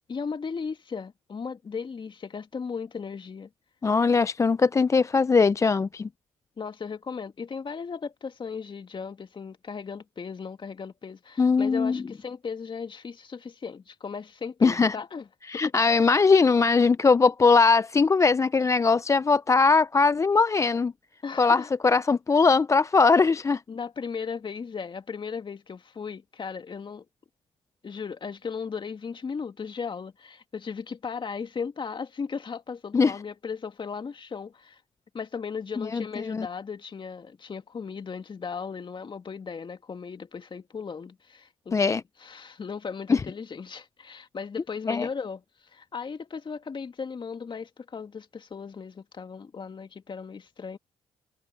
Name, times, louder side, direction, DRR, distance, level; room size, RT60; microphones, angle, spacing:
voice 1, 0.1-3.5 6.6-15.3 15.5-15.6 21.2-21.7 23.7-27.0 27.8-34.8 35.1-45.4 45.7-50.8, left 5 dB, 40° left, 2.4 m, -36 dB
voice 2, 3.8-6.1 11.4-12.0 14.6-14.9 15.5-20.9 21.4-23.6 32.9-33.1 35.9-36.5 41.7-42.0 43.1-43.2 44.9-45.1, left 4 dB, 25° left, 0.4 m, -21 dB
supercardioid pair, 60°, 12 cm